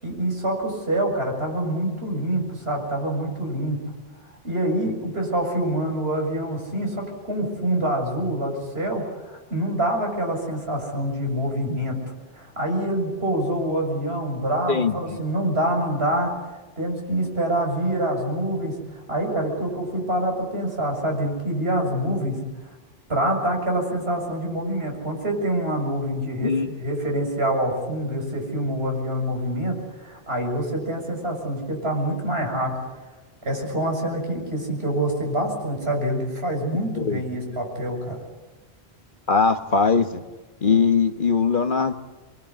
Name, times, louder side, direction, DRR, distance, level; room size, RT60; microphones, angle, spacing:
voice 1, 0.0-3.8 4.4-12.0 12.3-16.3 16.8-22.4 23.1-32.7 33.4-38.2, right 1 dB, 80° right, 1 dB, 7.3 m, -26 dB
voice 2, 37.0-37.4 39.3-40.2 40.6-41.9, left 5 dB, 55° left, 8 dB, 1.5 m, -21 dB
25.5 x 23.5 x 9.9 m, 1.2 s
omnidirectional pair, 1.0 m